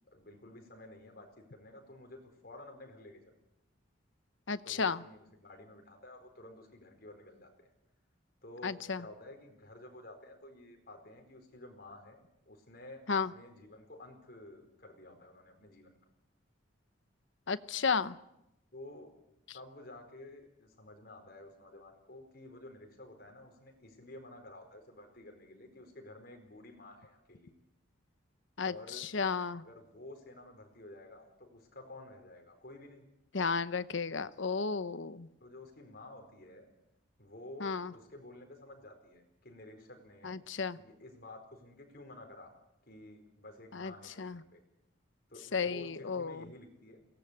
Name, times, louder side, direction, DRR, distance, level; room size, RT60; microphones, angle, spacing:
voice 1, 0.1-3.3 4.6-7.7 8.4-15.9 18.7-19.1 19.5-27.5 28.6-29.0 29.5-33.1 35.4-36.7 37.2-40.4 40.7-42.5 42.9-44.6 45.3-47.0, left 1 dB, 50° left, 4 dB, 4.7 m, -52 dB
voice 2, 4.5-5.0 8.6-9.0 13.1-13.3 17.5-18.2 28.6-29.6 33.3-35.3 37.6-37.9 40.2-40.8 43.7-43.9 44.2-44.4 45.5-46.4, left 5 dB, 70° left, 14 dB, 0.8 m, -33 dB
22.5 x 18.5 x 8.2 m, 0.87 s
head